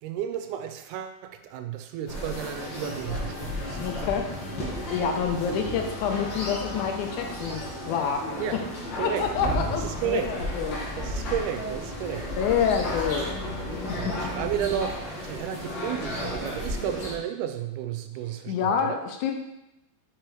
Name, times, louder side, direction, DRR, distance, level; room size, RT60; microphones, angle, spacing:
voice 1, 0.0-3.8 8.4-10.3 11.0-12.3 13.9-19.0, right 9 dB, 80° right, 7 dB, 1.9 m, -33 dB
sound 1, 2.1-17.1, equal, 50° left, 1.6 m, -33 dB
Wind instrument woodwind instrument, 2.8-8.7, left 2 dB, 15° right, 1.6 m, -49 dB
voice 2, 3.8-4.3 4.9-8.2 9.0-10.8 12.4-13.3 13.9-14.2 18.5-19.3, left 7 dB, 80° left, 4 dB, 2.1 m, -27 dB
5.3 x 4.6 x 4.5 m, 0.89 s
omnidirectional pair, 3.7 m